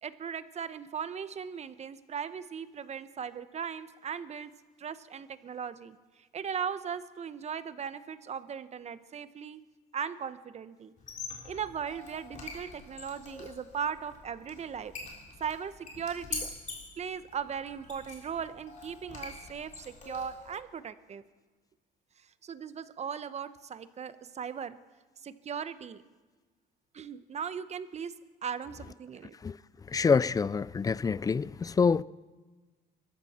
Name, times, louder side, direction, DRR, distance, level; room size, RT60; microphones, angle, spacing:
voice 1, 0.0-4.5 4.8-6.0 6.3-9.6 9.9-10.9 11.4-14.9 15.4-16.5 17.0-21.2 22.4-24.8 25.2-26.0 26.9-28.1 28.4-29.4, right 7 dB, 40° right, 0.9 m, -38 dB
Squeak, 11.0-20.6, left 4 dB, 45° left, 3.6 m, -44 dB
voice 2, 29.9-32.0, left 5 dB, 20° left, 0.4 m, -26 dB
23.0 x 13.5 x 4.3 m
cardioid pair, 95°, 17 cm